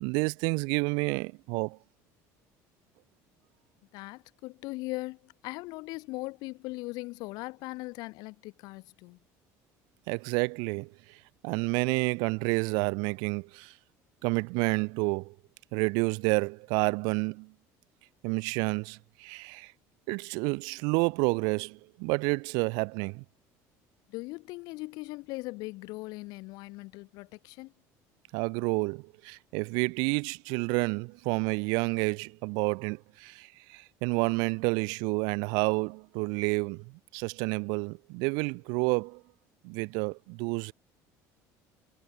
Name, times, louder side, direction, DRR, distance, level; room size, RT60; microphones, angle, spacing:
voice 1, 0.0-1.8 10.1-13.7 14.2-15.3 15.7-17.5 18.2-19.7 20.1-23.2 28.3-39.2 39.6-40.7, right 33 dB, 85° right, 0.6 m, -29 dB
voice 2, 3.9-9.2 24.1-27.7, left 23 dB, 75° left, 1.4 m, -39 dB
cardioid pair, 145°, 7 cm